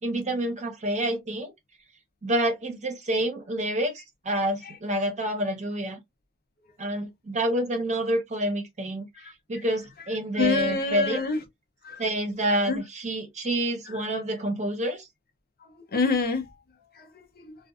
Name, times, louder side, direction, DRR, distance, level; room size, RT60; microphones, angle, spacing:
voice 1, 0.0-1.5 2.2-6.0 6.8-11.2 12.0-15.1, right 1 dB, 35° right, 0.8 m, -28 dB
voice 2, 10.4-11.4 11.8-12.0 12.7-12.8 15.9-16.5 17.0-17.6, left 3 dB, 45° left, 0.6 m, -27 dB
2.5 x 2.3 x 2.4 m
head